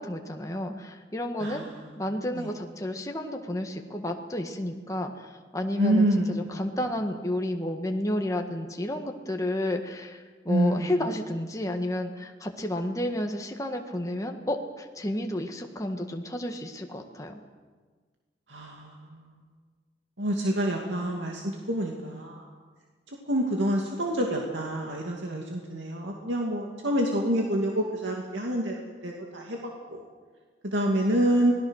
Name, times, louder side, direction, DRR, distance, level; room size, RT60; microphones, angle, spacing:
voice 1, 0.0-1.6 2.0-17.4, left 1 dB, 20° left, 3 dB, 1.6 m, -31 dB
voice 2, 1.4-1.7 2.3-2.5 5.8-6.6 10.5-10.9 18.5-19.2 20.2-21.4 21.7-22.4 23.3-29.6 29.9-30.0 30.6-31.5, right 1 dB, 80° right, 0 dB, 2.5 m, -27 dB
26.0 x 18.5 x 6.5 m, 1.5 s
head